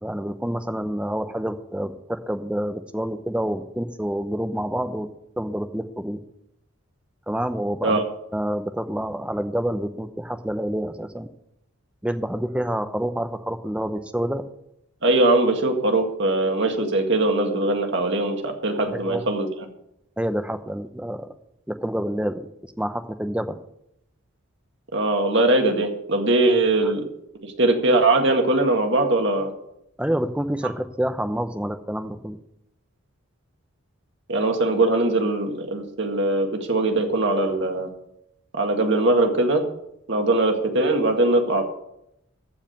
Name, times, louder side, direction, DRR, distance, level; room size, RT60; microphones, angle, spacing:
voice 1, 0.0-5.1 5.4-6.2 7.3-8.0 8.3-11.3 12.0-14.5 18.9-19.2 20.2-21.3 21.7-22.5 22.8-23.6 26.8-26.9 30.0-32.4, equal, 5° right, 8 dB, 0.7 m, -28 dB
voice 2, 15.0-19.5 24.9-27.0 27.4-29.5 34.3-37.9 38.5-39.6 40.1-41.6, right 2 dB, 55° right, 4 dB, 1.9 m, -21 dB
14.5 x 4.9 x 9.4 m, 0.80 s
head